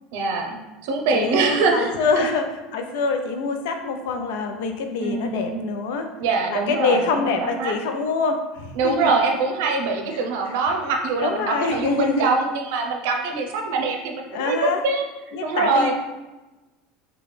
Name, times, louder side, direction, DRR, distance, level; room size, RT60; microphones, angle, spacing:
voice 1, 0.1-2.2 5.0-5.6 6.2-7.7 8.8-15.0 15.4-15.9, right 4 dB, 70° right, 3 dB, 0.6 m, -24 dB
voice 2, 1.1-2.4 2.7-6.1 6.5-9.1 11.2-12.3 14.3-14.8 15.3-15.9, left 4 dB, 75° left, 5 dB, 0.5 m, -25 dB
5.9 x 2.3 x 3.2 m, 1.1 s
cardioid pair, 165°, 0 cm